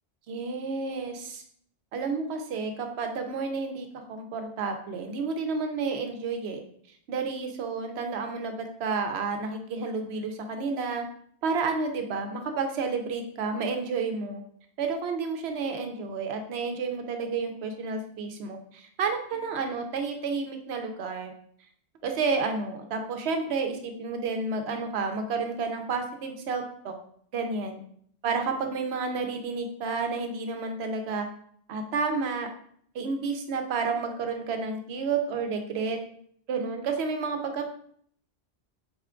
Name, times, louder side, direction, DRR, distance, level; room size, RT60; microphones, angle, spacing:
voice 1, 0.3-1.4 1.9-6.6 7.1-8.5 8.8-11.0 11.4-14.4 14.8-21.3 22.0-26.9 27.3-27.8 28.2-31.3 31.7-32.5 32.9-36.0 36.5-37.6, right 4 dB, 75° right, 5 dB, 0.9 m, -30 dB
4.3 x 2.2 x 3.6 m, 0.63 s
omnidirectional pair, 1.1 m